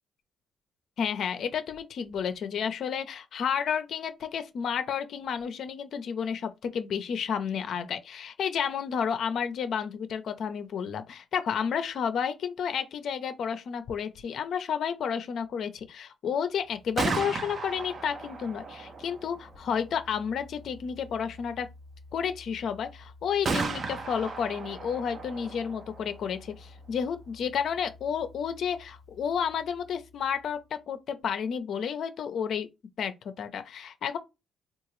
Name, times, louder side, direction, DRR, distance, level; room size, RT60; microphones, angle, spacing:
voice 1, 1.0-21.7 22.1-32.7 33.0-33.1 33.4-34.2, left 7 dB, 65° left, 0.6 m, -31 dB
Gunshot gunfire, 16.7-30.5, right 3 dB, 45° right, 0.7 m, -38 dB
3.7 x 2.5 x 3.1 m
cardioid pair, 90°, 0 cm